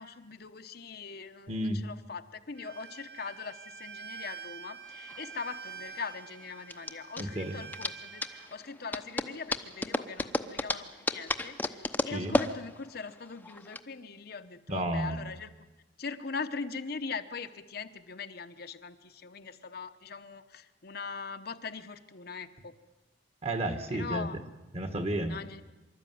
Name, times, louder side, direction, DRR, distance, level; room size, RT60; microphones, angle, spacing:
voice 1, 0.0-15.5 16.0-22.7 23.9-24.4 25.3-25.6, left 5 dB, 60° left, 8 dB, 1.0 m, -41 dB
voice 2, 1.5-1.8 7.2-7.6 12.1-12.4 14.7-15.2 23.4-24.3 24.7-25.4, right 1 dB, 35° right, 8 dB, 1.7 m, -32 dB
Bowed string instrument, 2.6-8.5, right 6 dB, 70° right, 2.5 m, -46 dB
sound 1, 4.9-13.8, left 2 dB, 10° left, 0.8 m, -34 dB
25.0 x 13.0 x 9.4 m, 1.1 s
head